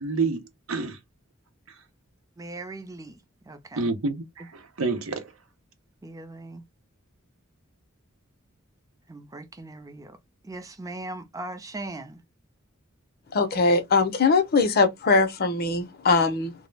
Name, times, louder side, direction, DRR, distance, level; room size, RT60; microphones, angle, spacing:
voice 1, 0.0-1.0 3.8-5.3, right 3 dB, 85° right, 0.6 m, -28 dB
voice 2, 2.4-3.2 3.5-3.9 6.0-6.6 9.1-10.2 10.4-12.2, right 2 dB, 15° right, 0.4 m, -39 dB
voice 3, 13.3-16.5, left 4 dB, 50° left, 0.6 m, -21 dB
2.2 x 2.1 x 3.1 m
head